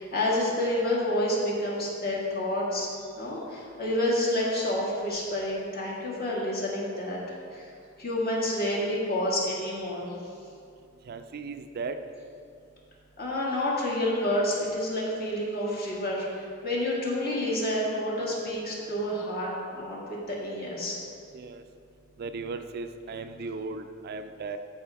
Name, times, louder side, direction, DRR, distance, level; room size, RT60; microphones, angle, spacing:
voice 1, 0.0-2.9 3.1-7.2 7.5-7.7 8.0-10.1 13.2-21.0, left 1 dB, 50° left, -5 dB, 1.9 m, -29 dB
voice 2, 11.1-12.0 21.3-21.6 22.2-24.6, right 4 dB, 50° right, 8 dB, 0.4 m, -36 dB
14.0 x 4.8 x 3.4 m, 2.4 s
head